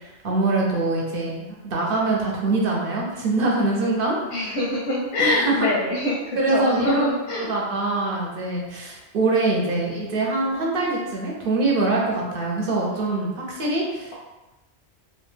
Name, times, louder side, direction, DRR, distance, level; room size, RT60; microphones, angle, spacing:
voice 1, 0.0-4.2 5.2-5.7 6.4-14.1, right 2 dB, 60° right, -2 dB, 0.8 m, -24 dB
voice 2, 4.3-7.5, left 1 dB, 90° left, -4 dB, 0.9 m, -24 dB
2.6 x 2.1 x 3.2 m, 1.0 s
omnidirectional pair, 1.1 m